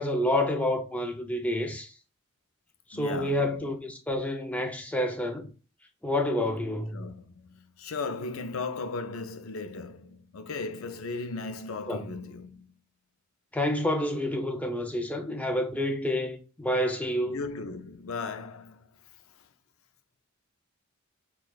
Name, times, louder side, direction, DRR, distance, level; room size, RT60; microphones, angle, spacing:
voice 1, 0.0-1.9 2.9-5.5 6.0-7.1 11.9-12.0 13.5-17.4, left 1 dB, 5° left, 0.4 m, -28 dB
voice 2, 2.9-3.6 6.9-12.7 17.3-18.9, left 3 dB, 75° left, 0.4 m, -36 dB
6.3 x 2.3 x 2.3 m
head